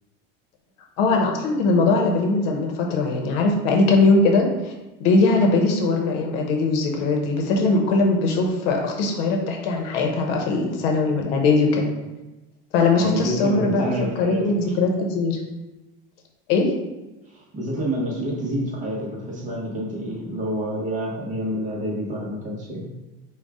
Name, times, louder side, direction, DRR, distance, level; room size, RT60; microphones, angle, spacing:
voice 1, 1.0-4.7 5.0-11.9 12.7-15.4 16.5-16.7, left 3 dB, 75° left, 1 dB, 0.9 m, -20 dB
voice 2, 13.0-14.7 17.5-22.9, equal, 25° right, -3 dB, 1.0 m, -28 dB
5.3 x 2.3 x 3.6 m, 1.0 s
supercardioid pair, 145°, 29 cm